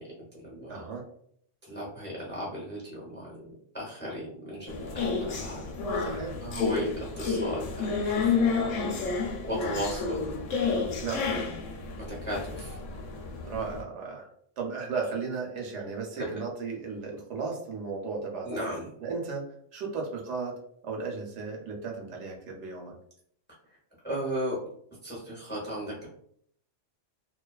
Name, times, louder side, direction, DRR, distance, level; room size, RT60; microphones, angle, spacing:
voice 1, 0.7-1.0 6.0-6.3 11.0-11.3 13.4-14.3 14.6-18.6 19.0-20.5 20.8-22.9, right 4 dB, 75° right, 0 dB, 0.9 m, -35 dB
voice 2, 1.7-3.4 3.7-6.1 6.4-6.9 7.2-8.9 9.4-10.2 12.1-12.8 16.2-16.4 18.4-18.9 24.0-24.6 25.0-26.1, equal, 10° left, -4 dB, 0.6 m, -36 dB
sound 1, 4.7-13.8, left 4 dB, 90° left, 0.9 m, -30 dB
2.4 x 2.3 x 2.2 m, 0.66 s
omnidirectional pair, 1.3 m